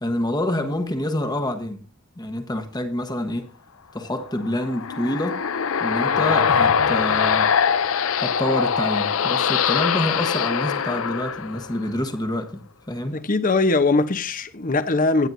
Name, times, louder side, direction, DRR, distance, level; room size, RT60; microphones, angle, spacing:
voice 1, 0.0-1.8 2.2-3.5 3.9-5.4 5.8-7.6 8.2-13.2, left 1 dB, 20° left, 1.2 m, -27 dB
sound 1, 4.4-12.0, left 7 dB, 85° left, 0.6 m, -22 dB
voice 2, 13.1-15.3, left 3 dB, 40° left, 0.9 m, -21 dB
22.5 x 8.9 x 2.7 m
head